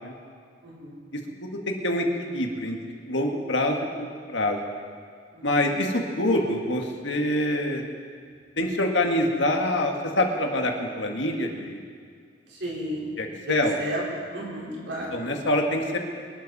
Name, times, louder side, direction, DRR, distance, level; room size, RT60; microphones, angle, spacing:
voice 1, 0.6-1.0 5.3-5.5 12.5-13.1 13.5-14.0 14.3-15.1, equal, 65° right, -5 dB, 4.6 m, -33 dB
voice 2, 1.4-2.8 3.1-4.6 5.4-7.8 8.6-11.8 13.2-13.8 15.1-16.0, left 1 dB, 70° left, 2 dB, 1.9 m, -25 dB
25.0 x 12.0 x 4.3 m, 2.1 s
head